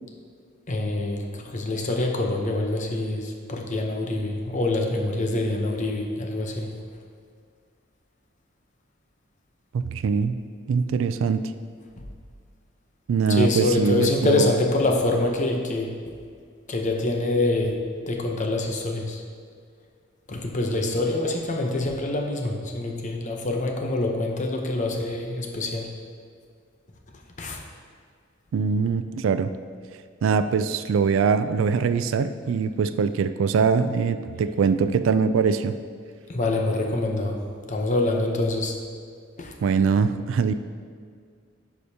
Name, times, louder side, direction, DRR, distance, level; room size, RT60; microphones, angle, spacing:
voice 1, 0.7-6.7 12.0-12.1 13.3-16.0 16.7-19.2 20.3-25.9 27.4-27.6 36.3-38.8 39.4-39.5, left 2 dB, 40° left, 2 dB, 0.7 m, -25 dB
voice 2, 9.7-10.4 10.7-11.4 13.1-14.5 28.5-29.5 30.2-35.7 39.6-40.5, right 5 dB, 85° right, 12 dB, 0.3 m, -22 dB
11.0 x 5.0 x 2.8 m, 2.1 s
head